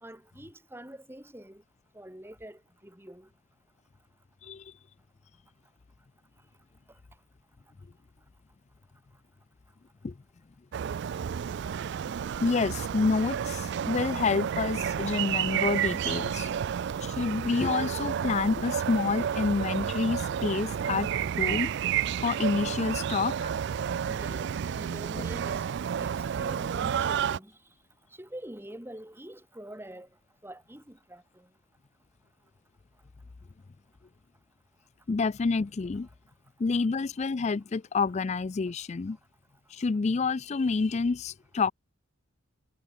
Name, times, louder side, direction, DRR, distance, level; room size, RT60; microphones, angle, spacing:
voice 1, 0.0-1.6 1.9-3.3 24.1-27.6 28.2-30.1 30.4-31.5, right 1 dB, 10° right, 2.9 m, -45 dB
voice 2, 4.4-4.7 10.0-10.1 12.4-16.5 17.0-21.7 22.2-23.5 25.2-25.3 35.1-36.1 36.6-39.2 39.7-41.7, left 4 dB, 30° left, 0.4 m, -28 dB
sound 1, 10.7-27.4, right 8 dB, 55° right, 0.3 m, -31 dB
head